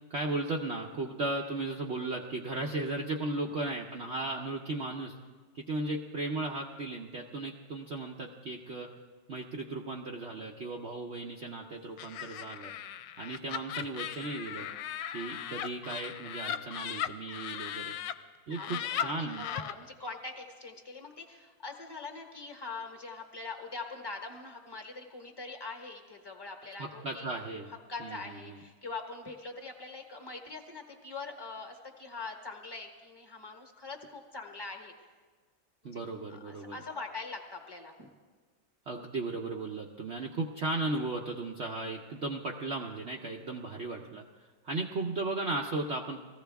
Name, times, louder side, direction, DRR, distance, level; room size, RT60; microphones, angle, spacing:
voice 1, 0.1-5.2 5.5-8.9 9.3-12.7 13.2-14.7 15.1-17.9 18.5-19.5 26.8-27.7 28.0-28.2 28.5-28.6 35.8-36.8 38.9-44.2 44.6-46.2, right 2 dB, 60° right, 0 dB, 0.7 m, -36 dB
Laughter, 12.0-18.1 18.5-19.7, left 10 dB, 80° left, 1.2 m, -37 dB
voice 2, 18.5-27.5 27.9-35.1 35.8-36.0 36.3-38.1, left 3 dB, 15° left, 2 dB, 0.9 m, -43 dB
20.0 x 15.0 x 3.5 m, 1.5 s
omnidirectional pair, 2.0 m